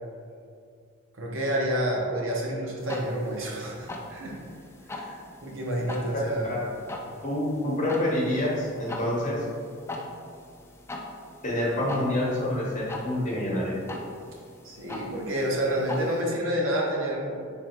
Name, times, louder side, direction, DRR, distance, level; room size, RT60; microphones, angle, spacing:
voice 1, 1.1-4.3 4.9-6.6 14.6-17.4, equal, 60° right, -2 dB, 0.8 m, -29 dB
sound 1, 2.8-16.2, left 2 dB, 10° left, 0.3 m, -41 dB
voice 2, 6.1-6.6 7.2-9.4 11.4-13.7, left 1 dB, 35° left, -5 dB, 1.0 m, -27 dB
3.5 x 3.4 x 4.3 m, 2.3 s
head